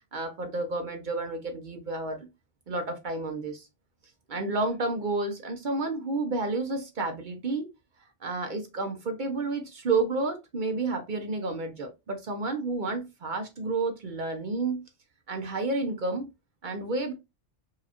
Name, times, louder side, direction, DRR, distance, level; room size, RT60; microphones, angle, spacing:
voice 1, 0.1-2.3 2.7-3.7 4.3-7.7 8.2-14.8 15.3-16.3 16.6-17.1, right 3 dB, 50° right, 0.7 m, -30 dB
4.7 x 2.3 x 2.8 m
omnidirectional pair, 1.2 m